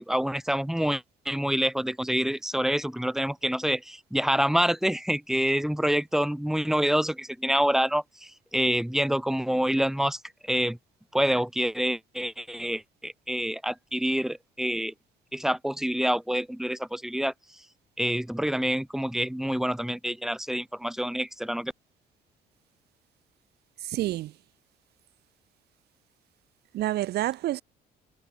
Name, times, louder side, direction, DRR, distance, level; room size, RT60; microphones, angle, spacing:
voice 1, 0.0-10.8 11.1-14.9 15.3-17.3 18.0-21.7, equal, ahead, 7.1 m, -27 dB
voice 2, 23.8-24.3 26.7-27.6, right 15 dB, 75° right, 4.0 m, -28 dB
cardioid pair, 110°, 17 cm